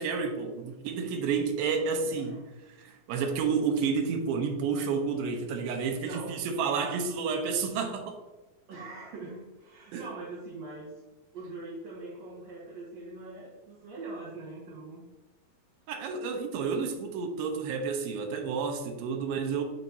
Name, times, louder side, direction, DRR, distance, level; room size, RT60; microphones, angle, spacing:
voice 1, 0.0-2.4 2.8-8.2 9.9-10.0 15.9-19.6, right 5 dB, 85° right, 2.6 m, -30 dB
voice 2, 6.0-6.4 8.7-10.9 11.3-15.0, right 2 dB, 60° right, 2.1 m, -42 dB
9.4 x 4.2 x 2.6 m
omnidirectional pair, 4.2 m